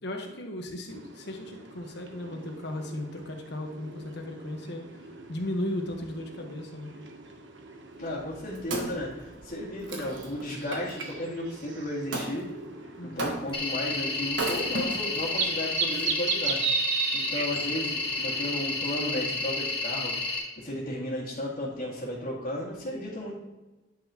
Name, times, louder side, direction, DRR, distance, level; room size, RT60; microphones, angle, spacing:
voice 1, 0.0-4.9 5.3-6.9 13.0-13.4, left 1 dB, 65° left, 3 dB, 1.2 m, -36 dB
sound 1, 0.9-19.0, right 6 dB, 70° right, 0.9 m, -38 dB
voice 2, 8.0-12.5 13.0-16.6 17.1-20.2 20.6-23.3, left 1 dB, 50° left, -9 dB, 2.1 m, -34 dB
Wood, 8.1-11.1 12.1-12.3 13.2-13.7 14.3-15.3 15.9-16.0, right 2 dB, 90° right, 1.3 m, -35 dB
sound 2, 13.5-20.4, left 3 dB, 30° left, 1.6 m, -31 dB
10.0 x 5.8 x 2.9 m, 1.1 s
head